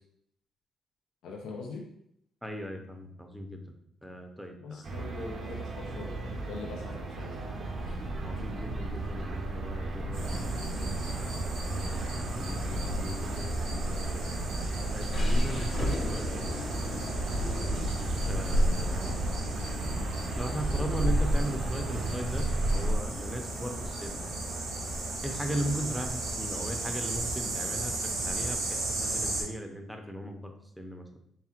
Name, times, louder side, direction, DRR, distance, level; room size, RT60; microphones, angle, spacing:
voice 1, 1.2-1.8 4.6-7.5 16.0-16.7 17.6-17.8, left 3 dB, 85° left, -1 dB, 0.6 m, -43 dB
voice 2, 2.4-3.6 4.0-4.8 8.2-14.2 14.9-16.3 18.2-19.2 20.3-24.2 25.2-27.9 28.2-31.1, equal, ahead, 3 dB, 0.6 m, -38 dB
sound 1, 4.8-22.9, right 2 dB, 50° right, 0.6 m, -35 dB
sound 2, 7.7-21.3, left 1 dB, 50° left, 0.9 m, -37 dB
sound 3, 10.1-29.4, right 1 dB, 80° right, 1.1 m, -33 dB
4.3 x 3.4 x 2.4 m, 0.73 s
cardioid pair, 90°, 0 cm